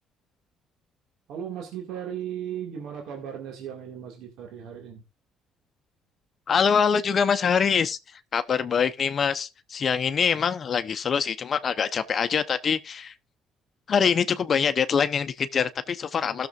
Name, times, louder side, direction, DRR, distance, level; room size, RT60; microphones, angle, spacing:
voice 1, 1.3-5.0, right 9 dB, 75° right, 2.1 m, -36 dB
voice 2, 6.5-13.1 13.9-16.5, left 6 dB, 50° left, 0.8 m, -24 dB
16.0 x 6.8 x 2.5 m
supercardioid pair, 65°, 0 cm